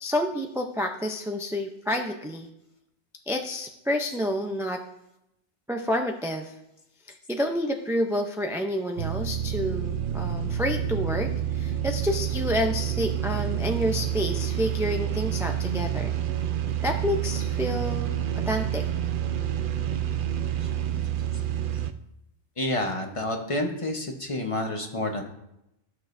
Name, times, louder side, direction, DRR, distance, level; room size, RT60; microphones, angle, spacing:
voice 1, 0.0-2.5 3.3-4.8 5.7-6.5 7.3-16.2 16.8-18.2 18.5-18.9, equal, 5° right, 4 dB, 0.4 m, -29 dB
sound 1, 9.0-21.9, right 10 dB, 60° right, 0.7 m, -28 dB
voice 2, 22.6-25.2, left 1 dB, 30° left, 3 dB, 1.1 m, -29 dB
14.0 x 6.2 x 2.6 m, 0.84 s
omnidirectional pair, 1.1 m